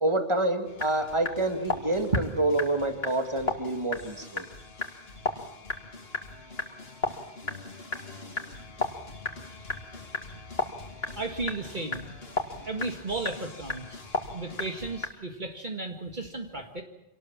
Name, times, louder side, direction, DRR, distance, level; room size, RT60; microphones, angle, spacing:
voice 1, 0.0-4.5, right 2 dB, 25° right, 7 dB, 2.3 m, -27 dB
sound 1, 0.6-15.1, left 3 dB, 70° left, 2.6 m, -36 dB
voice 2, 11.2-12.0 12.6-14.0 14.3-16.8, right 2 dB, 50° right, 4 dB, 2.0 m, -33 dB
26.0 x 19.0 x 7.4 m, 0.90 s
omnidirectional pair, 1.1 m